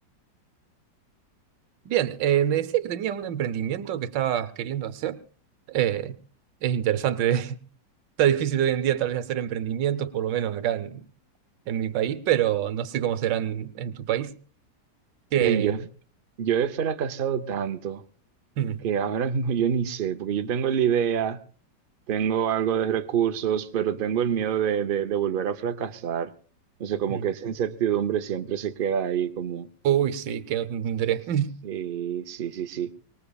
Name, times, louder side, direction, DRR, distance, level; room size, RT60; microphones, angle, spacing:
voice 1, 1.8-5.2 5.7-6.1 6.6-7.6 8.2-11.1 11.7-14.3 15.3-15.7 18.6-18.8 27.1-27.2 29.8-31.6, right 10 dB, 75° right, 1.5 m, -25 dB
voice 2, 15.4-15.9 16.4-18.0 18.8-21.4 22.1-26.3 26.8-29.7 31.6-32.9, right 8 dB, 50° right, 0.6 m, -26 dB
24.5 x 20.0 x 2.4 m
omnidirectional pair, 2.0 m